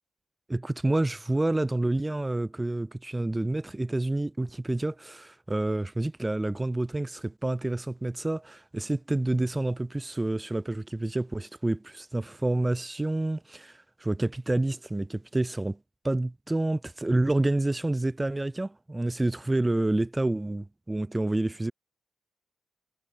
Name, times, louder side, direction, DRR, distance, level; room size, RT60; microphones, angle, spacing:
voice 1, 0.5-15.8 16.0-21.7, right 2 dB, 20° right, 0.4 m, -28 dB
supercardioid pair, 50°, 0 cm